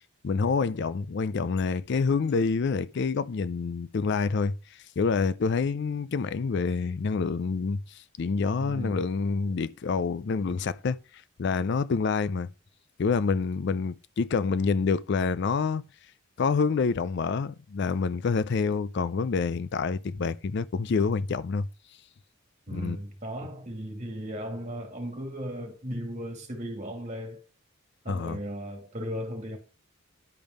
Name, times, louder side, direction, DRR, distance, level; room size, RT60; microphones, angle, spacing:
voice 1, 0.2-4.5 5.0-11.0 11.4-12.5 13.0-15.8 16.4-21.7 22.7-23.0 28.1-28.4, left 4 dB, 50° left, 0.4 m, -27 dB
voice 2, 8.6-9.0 22.7-27.4 28.0-29.6, equal, 35° right, 2.4 m, -36 dB
10.5 x 5.3 x 5.3 m
head